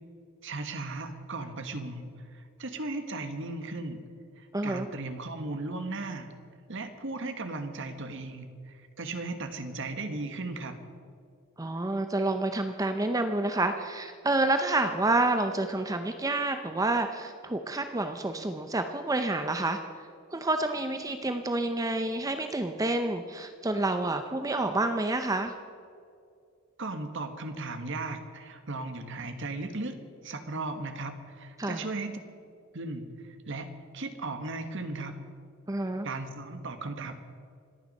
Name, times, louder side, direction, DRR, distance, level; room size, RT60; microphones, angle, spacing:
voice 1, 0.4-2.0 2.6-4.0 4.6-6.3 6.7-8.5 9.0-10.8 26.8-30.0 30.2-32.1 32.7-33.0 33.5-33.7 33.9-35.2 36.0-37.1, right 2 dB, 60° right, 7 dB, 1.5 m, -36 dB
voice 2, 4.5-4.9 11.6-19.8 20.3-25.5 31.6-31.8 35.7-36.1, right 2 dB, 15° right, 7 dB, 0.6 m, -28 dB
25.5 x 9.3 x 5.4 m, 2.4 s
head